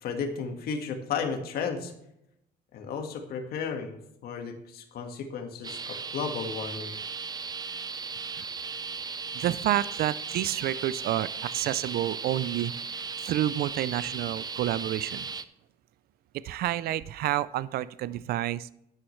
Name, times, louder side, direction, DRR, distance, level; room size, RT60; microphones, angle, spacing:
voice 1, 0.0-1.9 2.7-6.9, left 5 dB, 65° left, 5 dB, 1.7 m, -34 dB
sound 1, 5.6-15.4, right 5 dB, 25° right, 0.7 m, -36 dB
voice 2, 9.3-12.7 13.3-15.3 16.4-18.7, right 13 dB, 65° right, 17 dB, 0.5 m, -29 dB
12.5 x 9.6 x 3.2 m, 0.79 s
cardioid pair, 110°, 17 cm